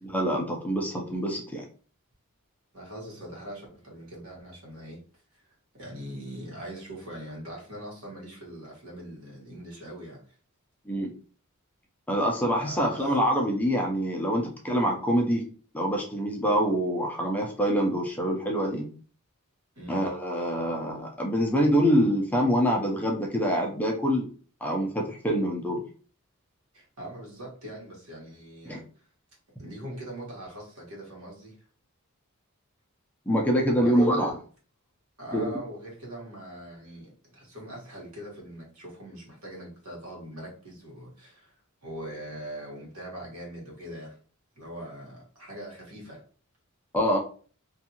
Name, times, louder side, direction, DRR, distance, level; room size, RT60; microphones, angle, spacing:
voice 1, 0.0-1.6 10.9-11.1 12.1-15.4 15.7-18.9 19.9-24.3 24.6-25.8 28.7-28.8 33.3-34.3 35.3-35.5 46.9-47.2, equal, 5° left, 0.4 m, -25 dB
voice 2, 2.7-5.0 5.3-5.4 5.7-10.4 12.5-13.1 19.7-20.1 26.7-28.8 29.6-31.6 33.7-34.2 35.2-41.5 41.8-44.2 44.5-46.2, right 1 dB, 85° right, 1.3 m, -41 dB
2.6 x 2.3 x 2.7 m
head